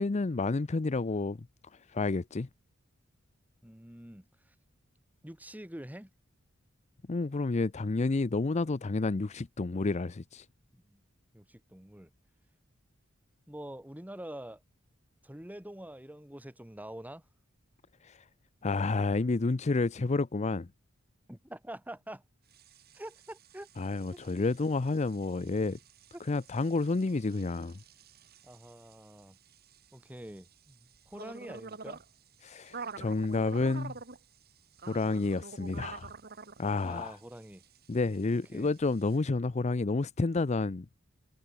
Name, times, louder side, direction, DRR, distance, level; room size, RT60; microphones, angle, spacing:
voice 1, 0.0-1.4 1.9-2.5 7.1-10.5 18.0-18.2 18.6-20.7 23.8-25.8 26.3-27.8 32.4-33.9 34.9-36.1 36.6-37.2 37.9-40.9, left 3 dB, 35° left, 0.5 m, -30 dB
voice 2, 3.6-4.5 5.2-6.1 10.7-11.0 11.3-12.1 13.5-14.6 15.2-17.2 21.3-22.2 22.9-23.7 28.4-29.4 29.9-32.0 36.8-37.6 38.3-38.7, right 1 dB, 10° right, 1.9 m, -46 dB
sound 1, 22.5-39.2, right 4 dB, 50° right, 2.0 m, -49 dB
head